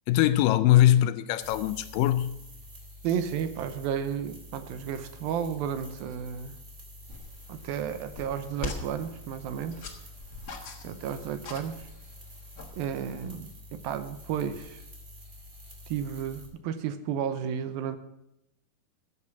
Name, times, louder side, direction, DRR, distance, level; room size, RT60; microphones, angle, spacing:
voice 1, 0.1-2.3, left 13 dB, 80° left, 2.1 m, -22 dB
sound 1, 1.4-16.5, left 1 dB, 25° right, 2.3 m, -48 dB
voice 2, 3.0-6.6 7.5-9.8 10.8-11.9 12.7-14.8 15.9-18.0, right 8 dB, 85° right, 2.6 m, -32 dB
sound 2, 7.1-13.3, left 4 dB, 55° left, 1.1 m, -43 dB
14.0 x 8.4 x 5.9 m
omnidirectional pair, 4.2 m